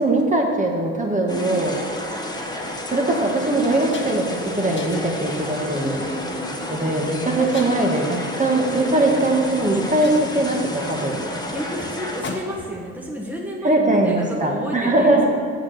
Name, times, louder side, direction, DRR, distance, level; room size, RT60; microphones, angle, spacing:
voice 1, 0.0-1.7 2.9-6.0 6.7-11.2 13.6-15.2, right 2 dB, 25° right, 0 dB, 1.5 m, -21 dB
voice 2, 1.2-1.6 5.7-6.8 11.5-15.2, equal, 5° right, -1 dB, 1.4 m, -32 dB
sound 1, 1.3-12.2, left 1 dB, 15° left, 1.2 m, -31 dB
sound 2, 2.5-2.7 3.2-3.3 3.6-4.4 4.8-5.2 5.9-6.2 7.5-8.1 9.2-9.3 9.6-9.7 10.0-12.8, left 3 dB, 40° left, 1.3 m, -38 dB
7.5 x 7.1 x 6.6 m, 2.4 s
cardioid pair, 90°, 30 cm